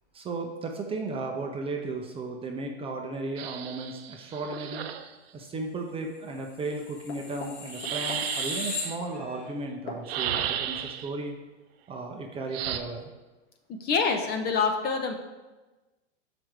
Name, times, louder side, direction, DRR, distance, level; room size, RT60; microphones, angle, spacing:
voice 1, 0.1-4.9 5.3-11.4 11.9-13.1, right 3 dB, 15° right, 1 dB, 0.6 m, -35 dB
sound 1, 3.4-5.1 7.7-9.0 10.1-11.1 12.5-12.8, right 10 dB, 55° right, 0.7 m, -33 dB
sound 2, 6.6-9.5 9.9-10.0, left 4 dB, 65° left, 1.6 m, -37 dB
voice 2, 13.8-15.1, left 5 dB, 25° left, 5 dB, 0.7 m, -26 dB
6.2 x 5.0 x 4.6 m, 1.2 s
hypercardioid pair, 115°, 36 cm